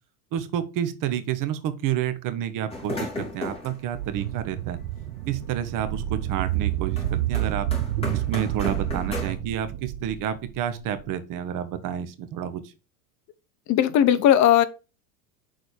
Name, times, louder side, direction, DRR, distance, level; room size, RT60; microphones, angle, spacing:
voice 1, 0.3-4.8 5.3-7.7 8.1-12.6, right 10 dB, 45° right, 1.4 m, -29 dB
sound 1, 2.7-5.4 5.7-9.4, left 2 dB, 15° left, 3.4 m, -36 dB
sound 2, 3.9-11.0, right 14 dB, 75° right, 0.8 m, -29 dB
voice 2, 13.7-14.6, left 10 dB, 40° left, 0.9 m, -17 dB
6.6 x 4.2 x 5.2 m
supercardioid pair, 115°, 43 cm